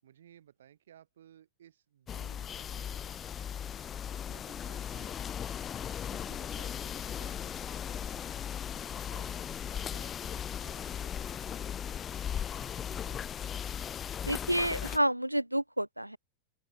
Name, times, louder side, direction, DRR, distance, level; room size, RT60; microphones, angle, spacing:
voice 1, 0.0-3.3 3.9-5.6 6.1-8.5 9.1-13.6, right 10 dB, 60° right, 7.4 m, -59 dB
sound 1, 2.1-15.0, left 9 dB, 25° left, 1.6 m, -37 dB
sound 2, 8.8-13.8, equal, ahead, 7.7 m, -68 dB
voice 2, 14.3-16.2, right 1 dB, 90° right, 0.3 m, -29 dB
open air
figure-of-eight pair, 90°, 0 cm